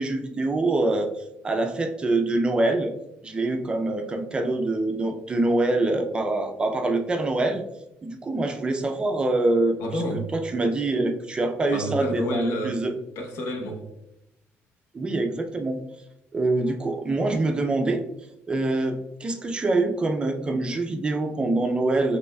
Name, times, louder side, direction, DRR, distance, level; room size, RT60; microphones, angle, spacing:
voice 1, 0.0-2.9 3.2-7.6 8.0-9.8 10.3-12.9 14.9-15.8 16.3-18.0 18.5-22.2, right 2 dB, 20° right, 0.3 m, -25 dB
voice 2, 9.8-10.3 11.7-12.8 13.2-13.9, equal, 65° left, 0.9 m, -29 dB
5.4 x 3.3 x 2.2 m
cardioid pair, 160°, 5 cm